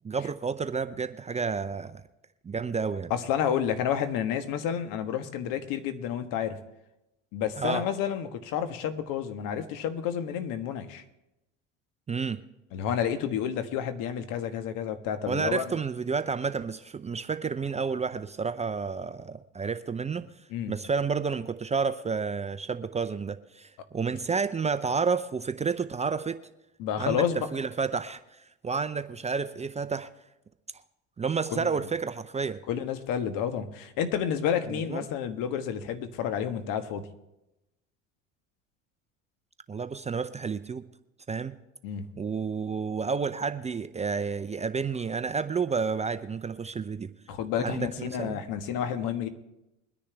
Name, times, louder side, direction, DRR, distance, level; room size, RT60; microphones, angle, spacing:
voice 1, 0.0-2.0 2.4-3.1 7.6-7.8 12.1-12.4 15.3-20.3 20.7-26.4 27.0-28.2 28.6-30.1 31.2-32.6 34.9-35.0 39.7-40.8 41.3-41.6 42.2-47.1 47.6-48.4, right 5 dB, 20° right, 11 dB, 0.6 m, -30 dB
voice 2, 3.1-6.6 7.3-11.0 12.7-15.7 20.5-20.7 26.8-27.5 31.5-31.7 32.7-37.1 41.8-42.1 47.3-49.3, left 8 dB, 60° left, 9 dB, 1.5 m, -30 dB
22.5 x 10.0 x 3.5 m, 0.92 s
hypercardioid pair, 75°, 37 cm